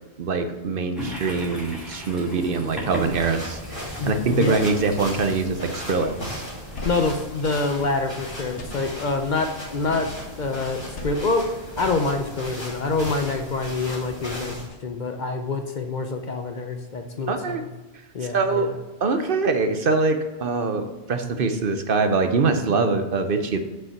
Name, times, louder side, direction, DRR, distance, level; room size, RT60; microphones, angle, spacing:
voice 1, 0.2-6.4 17.3-17.6 18.3-18.7 19.0-23.6, right 4 dB, 60° right, 7 dB, 0.8 m, -23 dB
Toilet flush, 1.0-7.5, equal, ahead, 2.5 m, -38 dB
sound 1, 2.9-14.7, equal, 25° left, 2.5 m, -36 dB
voice 2, 4.0-4.6 6.8-10.1 10.4-14.6 14.8-17.7 18.1-18.7, left 3 dB, 50° left, 6 dB, 0.6 m, -26 dB
sound 2, 6.5-8.1 8.4-9.4 10.7-12.4, left 1 dB, 85° left, 1.5 m, -41 dB
5.7 x 5.4 x 6.7 m, 1.2 s
omnidirectional pair, 1.1 m